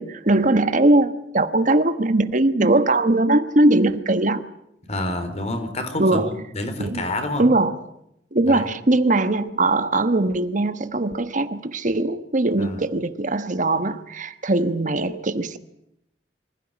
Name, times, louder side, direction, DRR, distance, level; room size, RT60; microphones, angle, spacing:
voice 1, 0.0-4.4 6.0-6.3 6.8-7.0 7.4-7.8 8.3-15.6, right 2 dB, 45° right, 1.2 m, -20 dB
voice 2, 4.9-7.4 8.4-8.7 12.6-12.9, left 1 dB, 40° left, 4.1 m, -28 dB
25.5 x 16.0 x 9.9 m
head